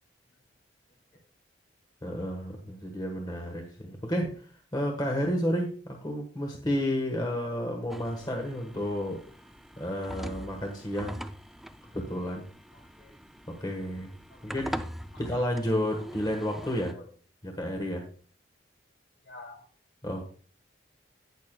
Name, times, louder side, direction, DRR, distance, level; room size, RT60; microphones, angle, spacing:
voice 1, 2.0-9.2 9.8-11.2 11.9-12.5 13.5-14.1 14.4-14.7 15.2-16.9 17.4-18.1 20.0-20.2, equal, 20° left, 2 dB, 1.2 m, -31 dB
sound 1, 7.9-16.9, equal, ahead, 0.3 m, -43 dB
voice 2, 12.7-13.1 14.3-14.7 15.1-15.3 16.6-17.1 19.2-19.7 20.1-20.2, left 2 dB, 60° left, 1 dB, 2.6 m, -51 dB
17.5 x 6.4 x 2.2 m, 0.41 s
head